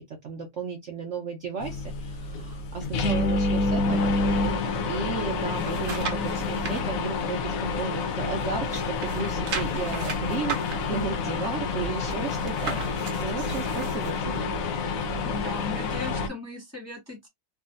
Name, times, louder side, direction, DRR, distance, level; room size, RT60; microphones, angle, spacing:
voice 1, 0.0-4.1 4.5-12.8 13.2-14.5, right 5 dB, 80° right, 0.6 m, -34 dB
sound 1, 1.6-16.3, left 3 dB, 75° left, 0.7 m, -28 dB
sound 2, 5.2-6.8 7.3-8.4 8.6-14.2 14.7-14.8, right 5 dB, 55° right, 0.9 m, -37 dB
voice 2, 15.2-17.3, left 3 dB, 10° left, 0.8 m, -37 dB
3.6 x 2.3 x 2.5 m
omnidirectional pair, 2.1 m